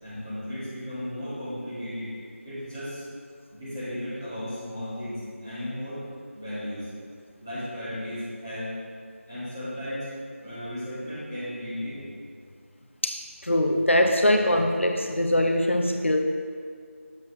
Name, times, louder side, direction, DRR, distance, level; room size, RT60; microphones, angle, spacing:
voice 1, 0.0-2.1 2.4-3.0 3.5-6.0 6.3-6.9 7.4-8.8 9.3-12.1, left 1 dB, 15° right, -13 dB, 1.6 m, -35 dB
voice 2, 13.0-16.2, left 1 dB, 60° left, 4 dB, 0.6 m, -22 dB
7.6 x 7.3 x 3.1 m, 2.1 s
figure-of-eight pair, 170°, 8 cm